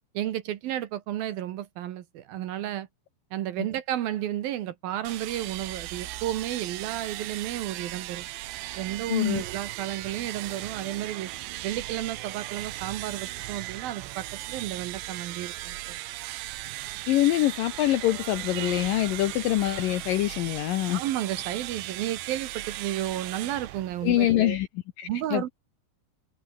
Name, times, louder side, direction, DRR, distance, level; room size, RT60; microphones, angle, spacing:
voice 1, 0.1-2.9 3.3-8.3 8.8-11.3 11.6-16.0 20.9-24.6 25.0-25.5, right 12 dB, 65° right, 2.7 m, -32 dB
sound 1, 5.0-24.5, right 17 dB, 90° right, 3.2 m, -37 dB
voice 2, 9.1-9.4 17.1-21.0 24.0-24.7 25.0-25.5, left 14 dB, 75° left, 2.1 m, -25 dB
omnidirectional pair, 5.0 m